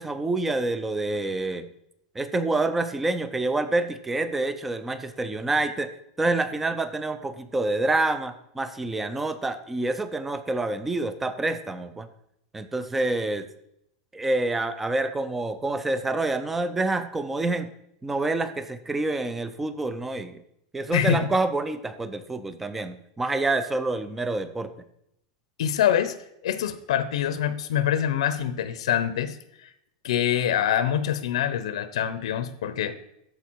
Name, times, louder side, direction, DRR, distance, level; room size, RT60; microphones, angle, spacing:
voice 1, 0.0-1.7 2.2-5.9 6.2-12.1 12.5-13.5 14.1-17.7 18.0-20.4 20.7-24.7, right 2 dB, 5° right, 11 dB, 0.4 m, -27 dB
voice 2, 20.9-21.3 25.6-26.2 26.4-29.7 30.0-32.9, left 10 dB, 80° left, 12 dB, 0.7 m, -25 dB
13.5 x 4.7 x 4.6 m, 0.78 s
supercardioid pair, 180°, 3 cm